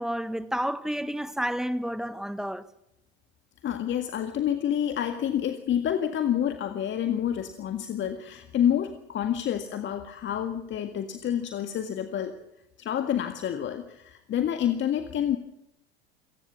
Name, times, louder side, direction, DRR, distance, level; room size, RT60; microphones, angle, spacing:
voice 1, 0.0-2.6, equal, ahead, 1.4 m, -30 dB
voice 2, 3.6-12.3 12.8-15.4, left 10 dB, 35° left, 1.8 m, -28 dB
28.5 x 18.5 x 7.1 m
figure-of-eight pair, 70°, 32 cm